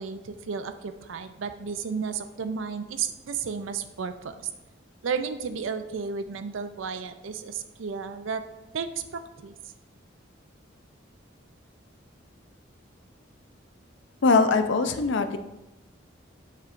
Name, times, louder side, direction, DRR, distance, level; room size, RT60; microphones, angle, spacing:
voice 1, 0.0-4.4 5.0-8.4 8.7-9.5, right 5 dB, 80° right, 9 dB, 0.5 m, -33 dB
voice 2, 14.2-15.4, left 4 dB, 70° left, 9 dB, 0.5 m, -21 dB
7.3 x 5.6 x 2.5 m, 1.0 s
head